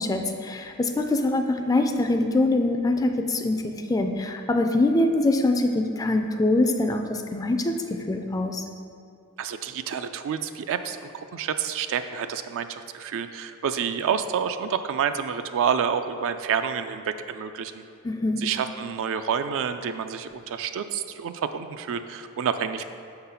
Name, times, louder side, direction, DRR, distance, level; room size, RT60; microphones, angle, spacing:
voice 1, 0.0-8.6 18.0-18.4, left 2 dB, 15° left, 5 dB, 0.3 m, -24 dB
voice 2, 9.4-17.8 18.4-22.8, right 7 dB, 60° right, 9 dB, 0.3 m, -28 dB
6.5 x 3.9 x 5.6 m, 2.5 s
head